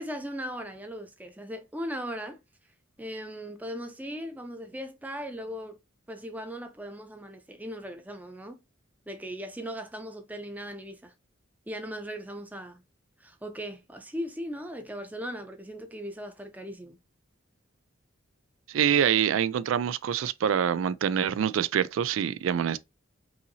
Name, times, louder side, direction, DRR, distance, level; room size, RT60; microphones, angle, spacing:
voice 1, 0.0-2.4 3.0-5.8 6.1-8.6 9.1-11.1 11.7-12.8 13.2-17.0, equal, 10° right, 0.6 m, -38 dB
voice 2, 18.7-22.8, right 8 dB, 75° right, 0.3 m, -25 dB
5.5 x 2.8 x 2.7 m
head